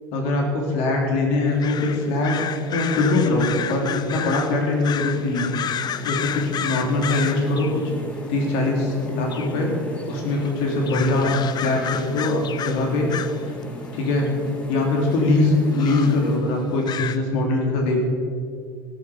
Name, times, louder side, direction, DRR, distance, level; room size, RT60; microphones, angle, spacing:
voice 1, 0.1-2.3 2.7-7.8 8.3-9.7 10.1-11.3 11.6-13.1 13.9-14.3 14.7-18.0, left 2 dB, 70° left, 1 dB, 3.3 m, -22 dB
sound 1, 1.6-7.9 8.9-9.0 9.3-9.6 10.4-10.5 10.9-13.6 14.3-14.4 15.1-15.2 15.7-16.2 16.9-17.2, left 9 dB, 40° left, 0.6 m, -31 dB
sound 2, 1.7-16.4, left 1 dB, 10° left, 1.9 m, -39 dB
14.5 x 11.5 x 5.1 m, 2.2 s
hypercardioid pair, 90°, 11 cm